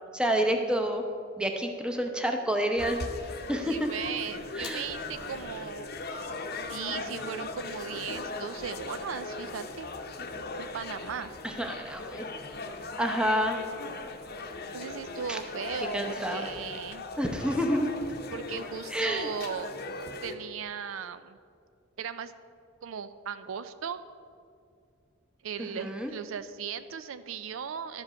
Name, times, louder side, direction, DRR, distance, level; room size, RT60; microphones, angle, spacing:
voice 1, 0.1-1.0 1.4-3.0 3.5-3.9 4.5-4.9 6.9-7.5 11.4-12.3 13.0-13.6 15.3-15.4 15.9-16.5 17.2-17.9 18.9-19.3 25.6-26.1, equal, 5° right, 3 dB, 0.7 m, -29 dB
sound 1, 2.8-20.3, left 3 dB, 50° left, 0.8 m, -39 dB
voice 2, 3.7-6.3 6.7-9.9 10.6-11.3 14.7-17.0 18.3-19.7 20.2-21.4 22.0-22.3 22.8-24.0 25.4-28.0, right 7 dB, 75° right, 12 dB, 0.4 m, -37 dB
12.0 x 5.2 x 6.2 m, 2.3 s
head